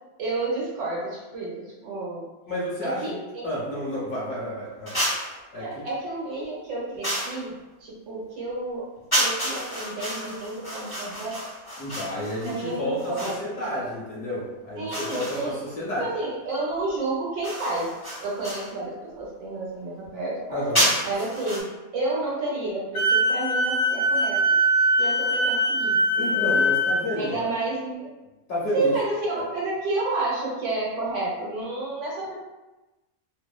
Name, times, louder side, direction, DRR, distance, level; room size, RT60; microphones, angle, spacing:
voice 1, 0.2-2.2 2.8-3.5 5.5-7.5 7.8-8.9 9.1-11.3 12.4-13.9 14.8-15.6 16.0-17.9 18.2-20.6 21.0-24.4 25.0-26.6 27.2-28.1 28.7-32.3, right 2 dB, 65° right, -4 dB, 1.0 m, -30 dB
voice 2, 2.5-3.1 3.4-5.0 5.5-5.9 11.8-16.1 20.5-20.9 26.2-27.4 28.5-28.9 29.4-29.5, left 1 dB, 65° left, -5 dB, 0.9 m, -30 dB
sound 1, 4.9-5.4 7.0-7.4 9.1-13.5 14.9-15.7 17.4-18.7 20.7-21.6, equal, 20° left, 0.6 m, -29 dB
Wind instrument woodwind instrument, 22.9-27.0, equal, 85° left, 1.1 m, -22 dB
2.7 x 2.0 x 2.3 m, 1.1 s
omnidirectional pair, 1.5 m